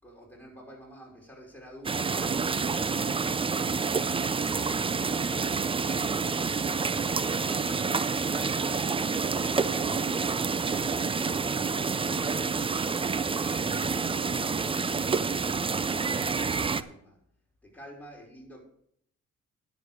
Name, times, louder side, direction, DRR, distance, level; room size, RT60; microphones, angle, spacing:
voice 1, 0.0-6.9 7.3-8.9 9.3-12.4 12.8-14.1 14.4-17.2 17.6-18.6, equal, 5° left, -3 dB, 4.9 m, -49 dB
sound 1, 1.8-16.8, right 5 dB, 20° right, 0.4 m, -28 dB
9.9 x 7.1 x 6.5 m, 0.69 s
cardioid pair, 90°, 30 cm